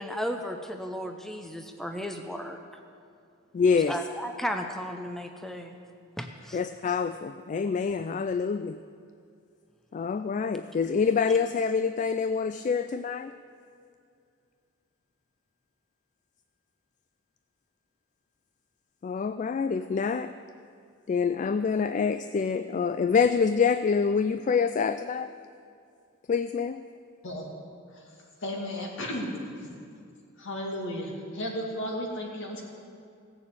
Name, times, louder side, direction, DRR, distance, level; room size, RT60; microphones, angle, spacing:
voice 1, 0.0-2.6 3.9-5.8 6.2-6.6, equal, ahead, 5 dB, 0.6 m, -34 dB
voice 2, 3.5-4.0 6.5-8.8 9.9-13.3 19.0-20.3 21.1-25.3 26.3-26.8, left 5 dB, 35° left, 11 dB, 0.3 m, -26 dB
voice 3, 28.4-29.7 30.4-32.6, left 1 dB, 65° left, 0 dB, 2.4 m, -34 dB
16.5 x 6.9 x 8.4 m, 2.4 s
head